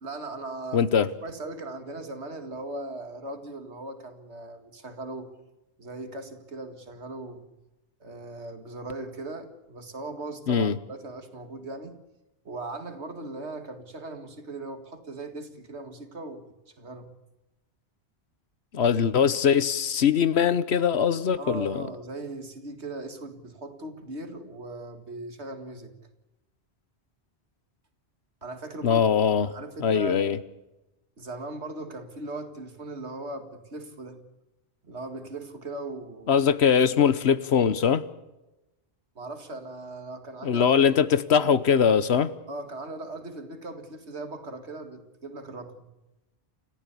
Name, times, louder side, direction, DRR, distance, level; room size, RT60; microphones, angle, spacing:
voice 1, 0.0-0.8 1.2-5.3 5.8-7.4 8.0-12.0 12.4-16.4 16.8-17.1 21.4-25.9 28.4-29.0 29.5-30.2 31.2-34.2 34.8-36.4 39.2-40.7 41.4-41.5 42.5-45.9, right 2 dB, 75° right, 7 dB, 2.4 m, -38 dB
voice 2, 0.7-1.1 10.5-10.8 18.7-21.8 28.8-29.5 29.8-30.4 36.3-38.0 40.4-42.3, left 7 dB, 70° left, 15 dB, 1.2 m, -22 dB
29.0 x 14.5 x 8.4 m, 1.0 s
omnidirectional pair, 1.1 m